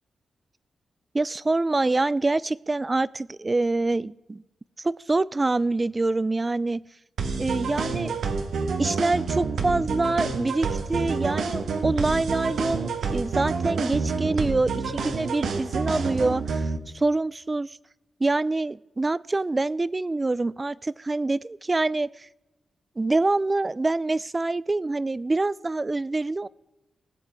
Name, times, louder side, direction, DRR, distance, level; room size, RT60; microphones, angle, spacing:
voice 1, 1.1-4.4 4.8-6.8 7.4-8.2 8.8-17.7 18.2-22.3 23.0-26.5, right 2 dB, 25° right, 21 dB, 0.3 m, -25 dB
sound 1, 7.2-16.8, right 4 dB, 85° right, 1.2 m, -28 dB
19.0 x 7.6 x 4.6 m, 0.99 s
wide cardioid pair, 115°, 0 cm